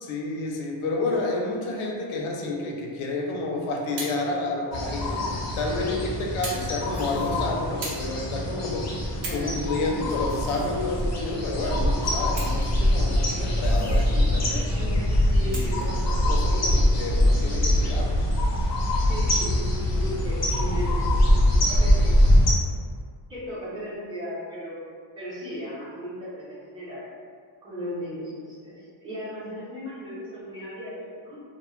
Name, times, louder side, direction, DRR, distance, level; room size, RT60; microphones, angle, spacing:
voice 1, 0.0-5.3 5.6-14.7 15.4-18.1, left 2 dB, 90° left, 0 dB, 0.6 m, -30 dB
sound 1, 3.9-4.2 5.1-5.2 6.4-6.7 7.0-7.2 7.8-8.1 8.6-8.7 9.1-9.5 10.0-11.0 12.2-12.9 13.4-13.5 15.5-15.9 16.8-16.9, right 2 dB, 70° right, 0.6 m, -37 dB
sound 2, 4.7-22.5, left 1 dB, 40° left, 0.4 m, -23 dB
voice 2, 5.6-6.2 9.2-9.8 14.7-16.7 19.1-22.2 23.3-24.8 25.2-27.0 27.6-31.4, equal, 10° right, -12 dB, 0.6 m, -36 dB
Human voice, 6.9-7.5 10.3-10.8 13.6-14.1, equal, 85° right, 1.1 m, -37 dB
2.1 x 2.0 x 3.0 m, 2.1 s
wide cardioid pair, 165°, 47 cm